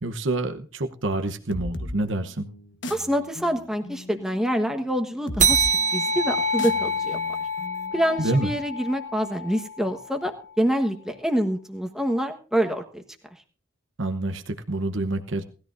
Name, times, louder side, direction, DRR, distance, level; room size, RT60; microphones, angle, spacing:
voice 1, 0.0-2.5 8.2-8.5 14.0-15.4, right 2 dB, 70° right, 7 dB, 0.9 m, -27 dB
sound 1, 1.5-8.9, left 1 dB, 65° left, 1.2 m, -38 dB
voice 2, 2.9-7.2 7.9-13.0, equal, 5° right, 4 dB, 1.3 m, -26 dB
sound 2, 5.4-10.3, right 2 dB, 35° right, 0.8 m, -26 dB
19.0 x 13.5 x 2.6 m, 0.38 s
head